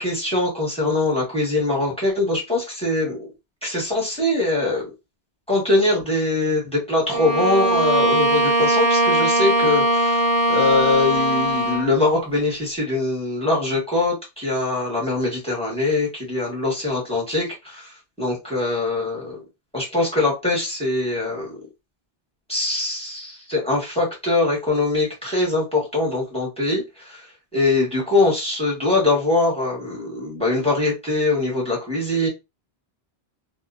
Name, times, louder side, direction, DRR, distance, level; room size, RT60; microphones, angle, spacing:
voice 1, 0.0-3.3 3.6-4.9 5.5-19.4 19.7-21.6 22.5-27.2 27.5-32.3, left 2 dB, 5° left, -3 dB, 1.3 m, -22 dB
Bowed string instrument, 7.1-11.9, right 1 dB, 60° right, 0.9 m, -20 dB
2.8 x 2.3 x 2.5 m, 0.24 s
omnidirectional pair, 1.1 m